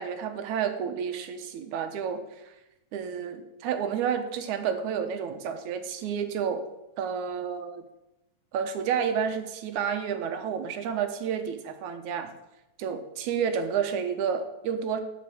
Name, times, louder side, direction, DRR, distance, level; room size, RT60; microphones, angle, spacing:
voice 1, 0.0-2.5 2.9-6.6 7.0-7.8 8.5-12.3 12.8-15.0, right 7 dB, 80° right, 7 dB, 2.4 m, -30 dB
12.0 x 5.4 x 7.8 m, 0.93 s
omnidirectional pair, 3.4 m